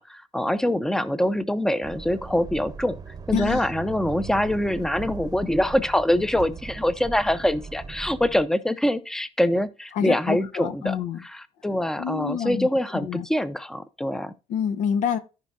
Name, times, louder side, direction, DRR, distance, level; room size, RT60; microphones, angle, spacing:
voice 1, 0.0-3.0 3.3-11.0 11.2-14.3, left 1 dB, 5° left, 0.7 m, -24 dB
sound 1, 1.8-8.4, right 5 dB, 30° right, 0.9 m, -38 dB
voice 2, 3.3-3.6 9.9-11.2 12.0-12.7 12.9-13.2 14.5-15.2, left 8 dB, 75° left, 1.1 m, -27 dB
14.5 x 5.0 x 2.6 m
cardioid pair, 110°, 13 cm